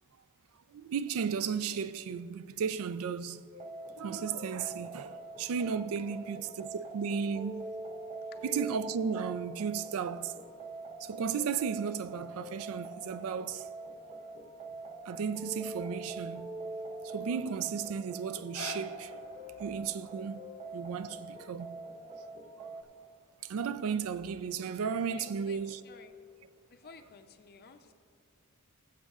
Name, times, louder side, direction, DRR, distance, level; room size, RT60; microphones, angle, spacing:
voice 1, 0.7-3.5 4.0-7.7 8.4-10.3 11.0-13.7 15.1-16.5 17.0-19.3 19.6-20.4 20.7-21.8 22.2-22.3 23.4-25.8, right 6 dB, 65° right, 0.4 m, -34 dB
sound 1, 3.5-22.8, right 2 dB, 30° right, 0.6 m, -44 dB
sound 2, 18.3-24.4 25.0-25.1, left 5 dB, 90° left, 0.7 m, -51 dB
voice 2, 25.2-26.1 26.7-27.9, left 5 dB, 45° left, 0.6 m, -54 dB
20.0 x 7.5 x 2.4 m
head